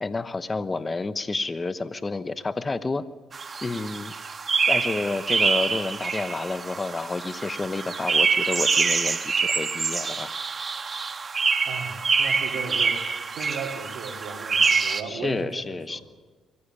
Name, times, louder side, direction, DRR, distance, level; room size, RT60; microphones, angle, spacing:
voice 1, 0.0-3.0 3.6-4.1 4.7-10.3 15.1-16.0, left 3 dB, 25° left, 13 dB, 1.1 m, -30 dB
sound 1, 3.3-15.0, right 5 dB, 40° right, 1.5 m, -25 dB
voice 2, 11.6-16.0, right 5 dB, 80° right, 2 dB, 4.2 m, -36 dB
23.5 x 15.5 x 10.0 m, 1.3 s
cardioid pair, 90°, 0 cm